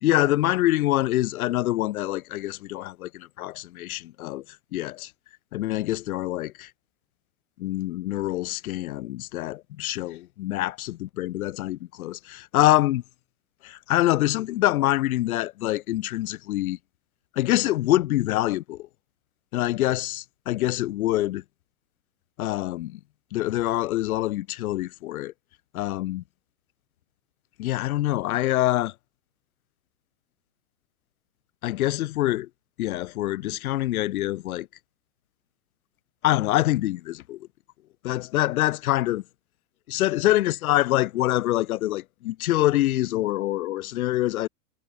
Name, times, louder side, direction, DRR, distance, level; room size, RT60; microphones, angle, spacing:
voice 1, 0.0-4.4 4.7-5.1 5.5-6.7 7.6-13.0 13.6-16.8 17.3-18.9 19.5-21.4 22.4-23.0 23.3-25.3 25.7-26.2 27.6-28.9 31.6-32.5 32.8-34.7 36.2-37.5 38.0-39.2 39.9-44.5, left 15 dB, 60° left, 1.6 m, -25 dB
hypercardioid pair, 130°, 48 cm